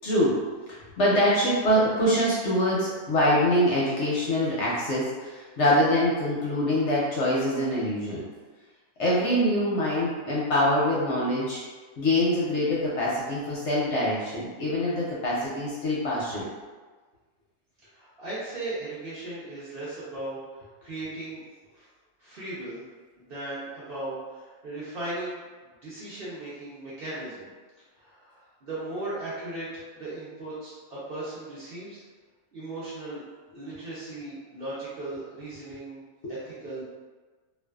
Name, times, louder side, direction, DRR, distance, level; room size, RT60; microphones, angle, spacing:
voice 1, 0.0-8.2 9.0-11.6 12.0-16.5 36.2-36.3, left 1 dB, 65° left, -6 dB, 0.8 m, -24 dB
voice 2, 17.9-20.4 20.8-21.4 21.7-21.9 22.2-22.8 23.2-25.4 25.8-27.5 28.0-32.0 32.5-33.2 33.5-36.0 36.4-36.8, right 2 dB, 55° right, -10 dB, 0.7 m, -37 dB
2.5 x 2.3 x 2.2 m, 1.4 s
omnidirectional pair, 1.5 m